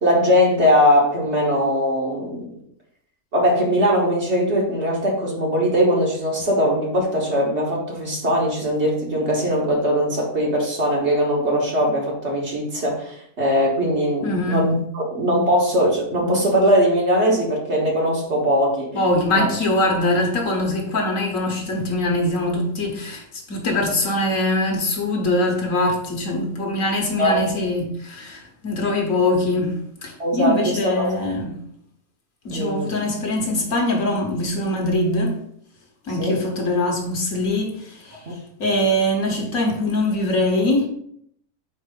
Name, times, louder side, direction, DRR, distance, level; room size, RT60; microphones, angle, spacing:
voice 1, 0.0-2.5 3.3-18.9 19.3-19.5 27.2-27.4 30.2-30.6 30.8-31.1 32.5-32.9 36.2-36.4 38.3-38.4, equal, 45° right, 1.6 m, -20 dB
voice 2, 14.2-14.6 18.9-31.6 32.4-35.4 36.0-40.9, left 1 dB, 60° left, 1.4 m, -23 dB
4.6 x 4.2 x 5.1 m
omnidirectional pair, 1.7 m